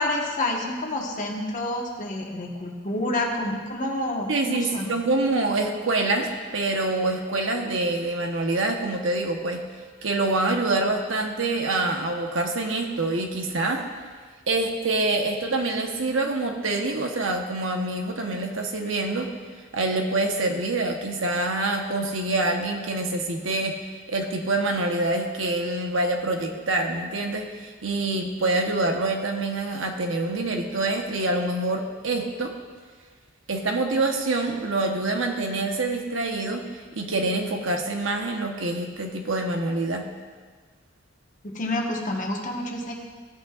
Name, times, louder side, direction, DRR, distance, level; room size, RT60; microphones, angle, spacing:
voice 1, 0.0-4.9 41.4-42.9, left 1 dB, 40° left, 0 dB, 1.3 m, -28 dB
voice 2, 4.3-9.6 10.0-13.8 14.5-19.3 19.7-23.8 24.1-32.5 33.5-36.6 36.9-40.1, right 2 dB, 80° right, 3 dB, 1.1 m, -26 dB
15.5 x 8.9 x 2.4 m, 1.5 s
head